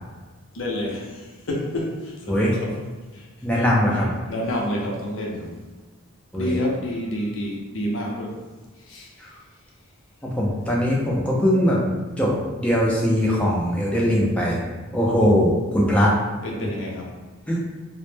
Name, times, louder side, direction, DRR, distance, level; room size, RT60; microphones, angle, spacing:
voice 1, 0.5-2.7 3.1-3.3 3.6-3.7 4.3-5.5 6.3-8.4 8.9-9.1 16.4-17.1, equal, 65° left, -1 dB, 0.5 m, -28 dB
voice 2, 3.4-4.1 6.3-6.6 10.2-11.8 12.2-12.3 12.6-14.6 14.9-16.1 17.5-17.6, equal, 5° left, -4 dB, 0.3 m, -20 dB
2.0 x 2.0 x 3.1 m, 1.3 s
head